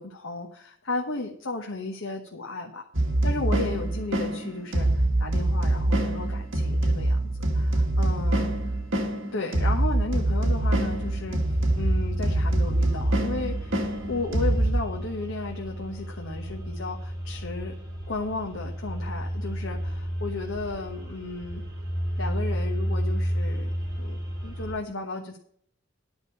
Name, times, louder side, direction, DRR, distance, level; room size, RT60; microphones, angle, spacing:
voice 1, 0.0-2.8 3.2-7.2 7.5-8.6 9.0-13.7 14.1-17.7 18.1-21.6 22.2-23.7 24.0-25.4, left 3 dB, 75° left, 1 dB, 1.3 m, -34 dB
sound 1, 2.9-14.8, right 1 dB, 75° right, 1.7 m, -25 dB
sound 2, 10.4-24.7, equal, 20° right, 5.0 m, -32 dB
11.0 x 5.2 x 8.4 m, 0.65 s
head